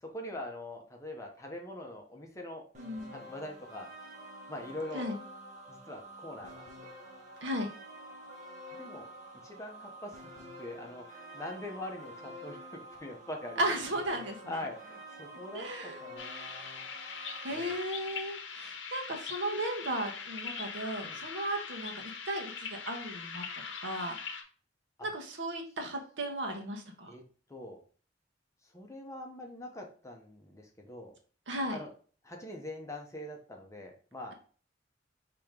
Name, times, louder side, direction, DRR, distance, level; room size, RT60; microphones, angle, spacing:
voice 1, 0.0-2.6 3.1-3.9 4.5-5.1 5.7-6.6 8.7-9.1 9.4-13.6 14.5-16.9 17.5-17.8 21.0-21.2 25.0-25.1 27.1-27.2 27.5-27.8 28.7-31.1 31.7-31.9 32.2-34.3, left 1 dB, 15° left, 1 dB, 0.8 m, -43 dB
sound 1, 2.7-17.5, right 1 dB, 40° right, 1.5 m, -48 dB
voice 2, 2.8-3.2 4.9-5.2 7.4-7.7 13.6-14.6 15.5-16.0 17.4-23.4 23.8-24.2 25.0-27.1 31.5-31.8, right 1 dB, 70° right, 3 dB, 1.0 m, -35 dB
sound 2, 16.2-24.4, left 6 dB, 65° left, 0.8 m, -42 dB
5.0 x 2.9 x 3.6 m, 0.41 s
head